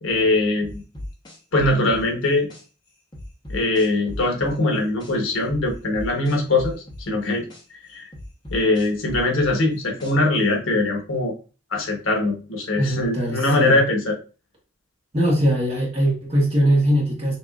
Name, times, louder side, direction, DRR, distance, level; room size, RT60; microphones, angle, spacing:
voice 1, 0.0-0.8 1.5-2.5 3.5-7.4 7.9-8.1 8.5-11.3 11.7-14.2, left 2 dB, 75° left, 2 dB, 1.1 m, -21 dB
sound 1, 0.6-2.6 3.1-5.1 5.5-7.6 8.1-10.4, left 1 dB, 20° left, 1.1 m, -36 dB
voice 2, 12.8-13.8 15.1-17.4, equal, 30° right, -2 dB, 1.4 m, -21 dB
6.2 x 2.8 x 2.4 m, 0.34 s
head